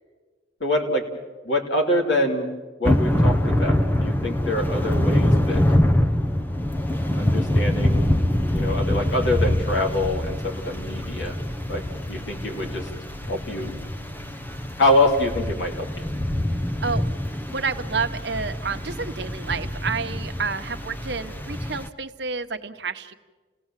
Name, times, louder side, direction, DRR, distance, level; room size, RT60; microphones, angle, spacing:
voice 1, 0.6-1.1 1.4-2.5 2.8-5.6 7.1-8.1 8.5-11.4 11.7-12.9 13.3-13.7 14.8-16.0, left 1 dB, 75° left, 1 dB, 3.3 m, -25 dB
Thunder / Rain, 2.8-21.9, left 1 dB, 10° left, 0.7 m, -24 dB
voice 2, 17.5-23.1, right 5 dB, 70° right, 7 dB, 1.1 m, -29 dB
29.5 x 17.5 x 7.5 m, 1.3 s
head